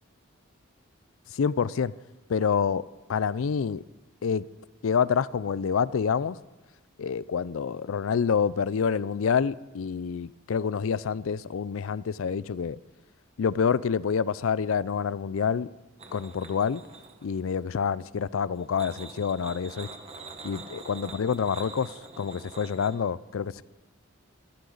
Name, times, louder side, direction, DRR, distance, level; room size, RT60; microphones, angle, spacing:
voice 1, 1.3-1.9 2.3-2.8 3.1-3.8 4.2-4.4 4.8-6.4 7.0-12.8 13.4-15.7 16.1-16.8 17.2-19.9 20.4-21.9 22.2-23.6, left 6 dB, 70° left, 0.4 m, -27 dB
sound 1, 16.0-17.5 18.5-23.0, right 4 dB, 30° right, 1.2 m, -45 dB
23.5 x 13.5 x 4.0 m
head